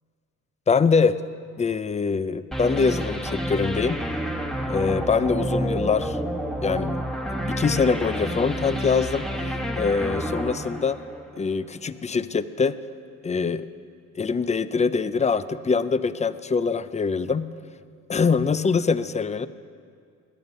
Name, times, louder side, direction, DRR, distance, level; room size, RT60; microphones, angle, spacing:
voice 1, 0.7-1.2 1.6-4.0 4.7-6.2 6.6-7.0 7.5-11.0 11.4-12.8 13.2-13.7 14.2-17.5 18.1-19.5, left 5 dB, 25° left, 15 dB, 0.5 m, -23 dB
sound 1, 2.5-11.6, equal, ahead, 1.3 m, -29 dB
17.5 x 11.0 x 5.4 m, 2.2 s
cardioid pair, 90°, 30 cm